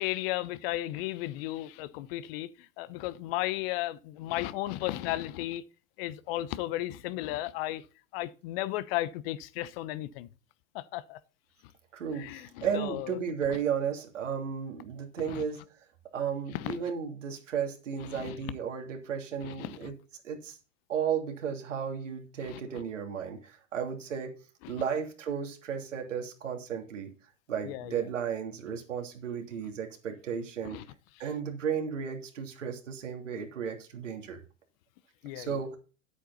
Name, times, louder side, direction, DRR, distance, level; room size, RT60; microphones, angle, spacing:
voice 1, 0.0-5.6 6.0-7.8 8.1-10.3 10.7-11.2 12.1-13.2 13.5-13.6 15.3-15.4 16.5-16.8 18.0-18.4 19.4-19.9 22.4-22.6 24.6-24.7 27.6-28.1 30.6-30.8 35.2-35.6, left 16 dB, 50° left, 1.0 m, -35 dB
voice 2, 11.9-15.6 16.1-19.9 20.2-20.6 20.9-24.3 24.7-27.1 27.5-30.8 31.2-34.4 35.3-35.8, right 7 dB, 80° right, 3.0 m, -34 dB
10.5 x 8.4 x 4.1 m
hypercardioid pair, 100°, 37 cm